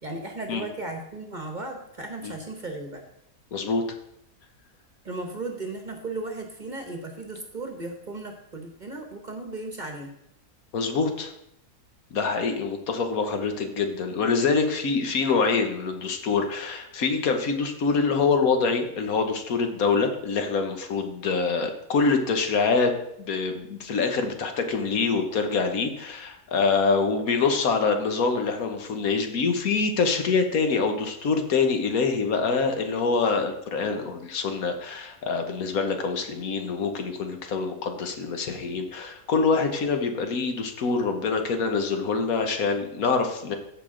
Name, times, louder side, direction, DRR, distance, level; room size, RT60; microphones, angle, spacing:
voice 1, 0.0-3.0 5.0-10.1, right 2 dB, 35° right, 3 dB, 1.1 m, -36 dB
voice 2, 3.5-3.8 10.7-11.3 12.1-22.9 23.2-43.6, left 4 dB, 70° left, 5 dB, 1.4 m, -25 dB
14.0 x 5.1 x 3.8 m, 0.78 s
omnidirectional pair, 1.6 m